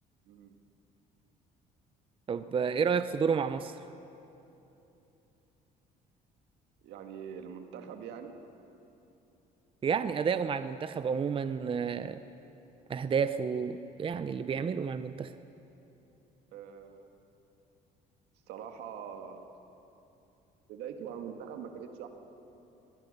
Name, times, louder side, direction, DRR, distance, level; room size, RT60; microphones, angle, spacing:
voice 1, 2.3-3.8 9.8-12.2 12.9-15.3, right 6 dB, 30° right, 11 dB, 0.7 m, -30 dB
voice 2, 6.8-8.4 16.5-17.2 18.5-19.5 20.7-22.1, right 7 dB, 85° right, 5 dB, 1.9 m, -43 dB
23.0 x 20.0 x 6.7 m, 3.0 s
cardioid pair, 110°, 17 cm